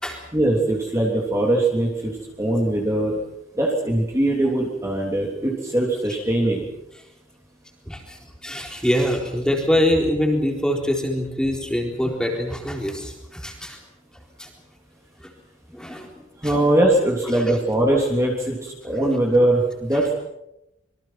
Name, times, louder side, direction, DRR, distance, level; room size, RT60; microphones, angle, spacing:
voice 1, 0.3-2.1 2.4-3.1 3.6-6.6 16.4-18.5 18.8-20.1, right 1 dB, 15° right, -2 dB, 3.2 m, -21 dB
voice 2, 7.9-13.8 14.4-14.5 15.7-16.5 17.3-17.4, equal, 5° left, 1 dB, 4.1 m, -24 dB
26.5 x 24.0 x 6.0 m, 0.88 s
head